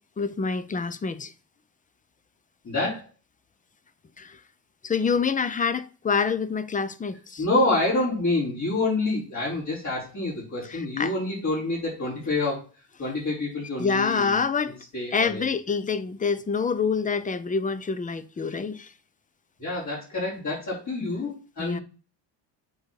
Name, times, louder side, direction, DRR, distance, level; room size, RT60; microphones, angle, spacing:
voice 1, 0.2-1.3 4.2-4.4 4.8-7.4 11.0-11.1 13.8-14.8 15.1-18.9 21.0-21.2 21.6-21.8, left 5 dB, 20° left, 0.6 m, -26 dB
voice 2, 2.6-3.1 7.4-12.6 13.0-14.4 14.6-15.5 19.6-21.8, left 2 dB, 40° left, 4.9 m, -27 dB
7.8 x 3.9 x 6.4 m
cardioid pair, 125°, 44 cm